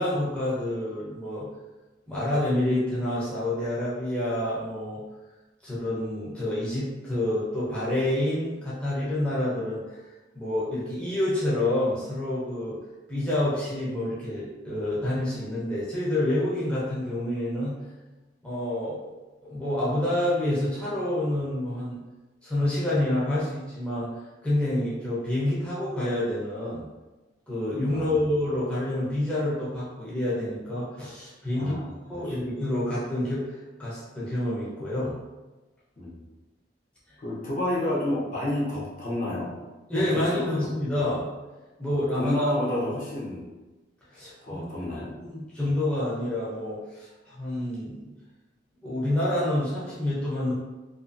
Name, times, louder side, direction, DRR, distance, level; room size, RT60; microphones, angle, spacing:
voice 1, 0.0-1.5 2.1-5.0 5.6-12.8 13.1-17.8 18.4-19.2 19.4-22.0 22.4-26.8 27.5-31.7 32.1-35.2 37.1-37.2 39.9-41.2 41.8-42.5 44.1-48.1 48.8-50.5, left 1 dB, 5° left, -9 dB, 0.6 m, -28 dB
voice 2, 31.5-32.4 36.0-36.2 37.2-39.6 40.1-40.7 42.2-43.5 44.4-45.1, left 1 dB, 45° left, -6 dB, 0.7 m, -30 dB
2.5 x 2.5 x 2.5 m, 1.1 s
head